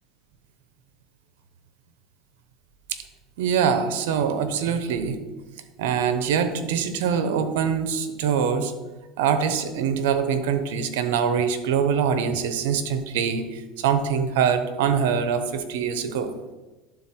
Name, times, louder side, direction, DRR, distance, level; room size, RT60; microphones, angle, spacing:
voice 1, 3.4-5.2 5.8-8.7 9.2-16.3, right 7 dB, 85° right, 10 dB, 0.8 m, -24 dB
11.5 x 3.9 x 4.4 m, 1.2 s
supercardioid pair, 110°, 0 cm